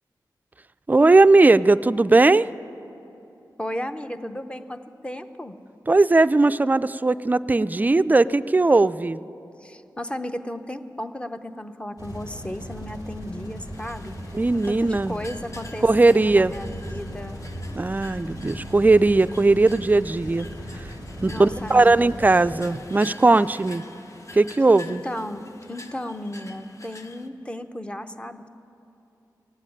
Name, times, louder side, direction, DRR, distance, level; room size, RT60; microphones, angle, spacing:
voice 1, 0.9-2.5 5.9-9.2 14.3-15.2 15.8-16.5 17.8-20.5 21.2-23.8 24.3-25.0, right 3 dB, 25° right, 14 dB, 0.3 m, -18 dB
voice 2, 3.6-5.5 9.6-14.1 14.5-17.4 21.2-22.1 24.9-28.5, left 1 dB, 15° left, 8 dB, 0.7 m, -34 dB
sound 1, 12.0-22.5, equal, 65° left, 3.2 m, -38 dB
sound 2, 13.7-27.3, left 2 dB, 45° left, 1.0 m, -46 dB
16.5 x 7.5 x 10.0 m, 2.8 s
cardioid pair, 60°, 8 cm